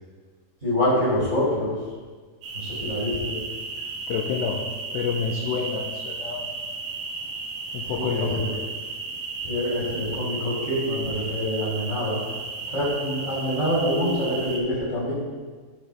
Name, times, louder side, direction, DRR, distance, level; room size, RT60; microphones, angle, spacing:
voice 1, 0.6-1.7 2.5-3.4 7.9-8.5 9.4-12.2 12.7-15.1, equal, 20° right, -9 dB, 2.7 m, -25 dB
sound 1, 2.4-14.6, right 4 dB, 70° right, 2.4 m, -34 dB
voice 2, 4.1-4.6 4.9-6.5 7.7-8.5, left 6 dB, 80° left, 1 dB, 2.7 m, -28 dB
13.0 x 6.4 x 3.4 m, 1.5 s
omnidirectional pair, 5.2 m